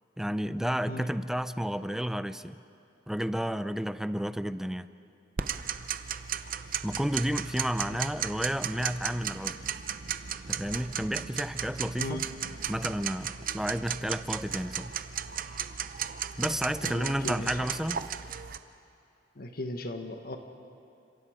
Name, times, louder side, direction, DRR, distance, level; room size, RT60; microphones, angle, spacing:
voice 1, 0.2-2.6 3.1-4.9 6.8-9.6 10.5-12.2 12.7-15.0 16.4-18.0, equal, 5° right, 13 dB, 0.5 m, -31 dB
Tick-tock, 5.4-18.6, right 8 dB, 50° right, 0.7 m, -35 dB
voice 2, 16.8-17.5 19.3-20.4, left 1 dB, 55° left, 6 dB, 1.4 m, -37 dB
30.0 x 26.5 x 5.0 m, 2.6 s
head